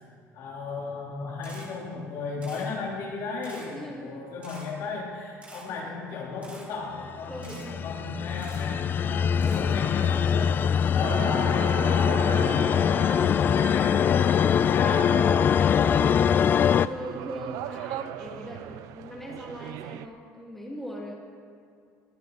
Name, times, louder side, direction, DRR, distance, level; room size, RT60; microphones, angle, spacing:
voice 1, 0.3-16.1, left 4 dB, 65° left, -3 dB, 3.4 m, -35 dB
Camera, 1.4-1.7 2.4-2.7 3.4-3.7 4.4-4.7 5.4-5.6 6.4-6.7 7.4-7.7 8.4-8.6 9.4-9.6, right 2 dB, 20° right, 3.3 m, -47 dB
voice 2, 3.7-4.3 5.7-6.0 7.3-8.0 9.4-10.7 12.9-13.4 14.3-15.2 16.4-21.1, equal, 5° left, -3 dB, 2.3 m, -41 dB
sound 1, 7.2-16.9, left 8 dB, 35° left, 0.3 m, -23 dB
sound 2, 11.0-20.1, right 11 dB, 75° right, 0.5 m, -39 dB
20.5 x 11.5 x 4.0 m, 2.3 s
cardioid pair, 135°, 6 cm